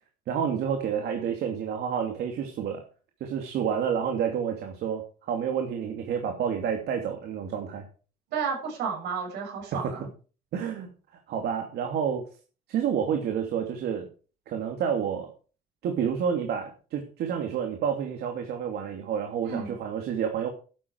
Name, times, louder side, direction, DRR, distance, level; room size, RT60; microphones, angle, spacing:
voice 1, 0.3-2.8 3.2-7.8 9.7-9.9 10.5-10.9 11.3-12.2 12.7-14.1 14.5-15.3 15.8-20.5, right 8 dB, 70° right, 4 dB, 2.8 m, -29 dB
voice 2, 8.3-10.0 19.5-19.7, right 6 dB, 85° right, 1 dB, 6.9 m, -32 dB
13.0 x 11.0 x 4.7 m, 0.37 s
cardioid pair, 110°, 17 cm